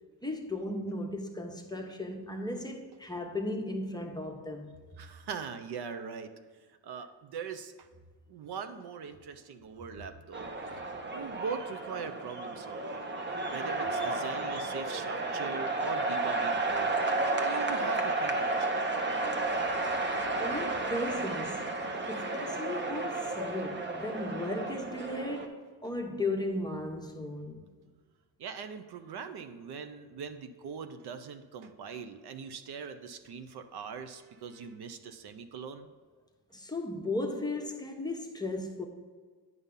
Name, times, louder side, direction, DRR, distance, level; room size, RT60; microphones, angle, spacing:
voice 1, 0.2-4.7 19.2-19.6 20.4-21.8 22.1-27.7 36.5-38.8, left 2 dB, 10° left, 0.9 m, -36 dB
voice 2, 5.0-6.3 6.8-7.9 8.3-10.5 11.1-13.0 13.5-17.0 17.4-18.9 28.4-35.9, right 6 dB, 65° right, 0.7 m, -41 dB
sound 1, 10.3-25.5, right 2 dB, 25° right, 0.8 m, -32 dB
9.4 x 5.6 x 3.8 m
cardioid pair, 120°, 42 cm